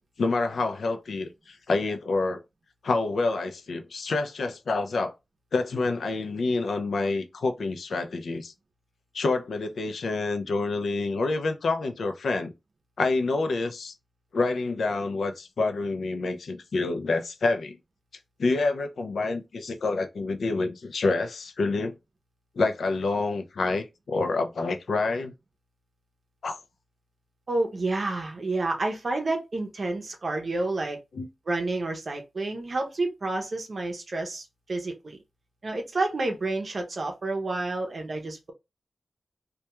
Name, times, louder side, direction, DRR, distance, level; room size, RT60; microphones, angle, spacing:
voice 1, 0.2-2.4 2.8-5.1 5.5-8.5 9.1-12.5 13.0-13.9 14.3-17.8 18.4-22.0 22.6-25.3 26.4-26.6 31.1-31.3, left 3 dB, 75° left, 0.4 m, -27 dB
voice 2, 27.5-31.0 31.5-35.2 35.6-38.5, right 2 dB, 45° right, 0.6 m, -29 dB
2.2 x 2.2 x 2.9 m
wide cardioid pair, 145°, 0 cm